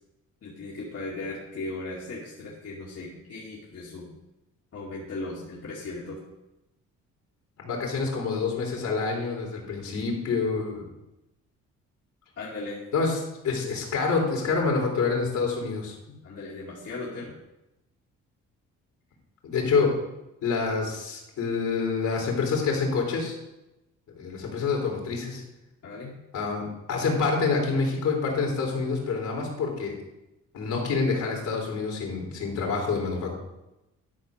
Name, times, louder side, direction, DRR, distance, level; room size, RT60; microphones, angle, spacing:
voice 1, 0.4-4.1 4.7-6.2 12.4-12.8 16.1-17.3 25.8-26.2, left 2 dB, 55° left, -6 dB, 2.3 m, -37 dB
voice 2, 7.6-10.8 12.9-13.2 13.4-16.0 19.4-19.9 20.4-23.4 24.2-25.4 26.3-30.0 30.5-33.4, left 4 dB, 70° left, -1 dB, 3.5 m, -27 dB
12.0 x 4.3 x 6.5 m, 0.94 s
cardioid pair, 90°, 30 cm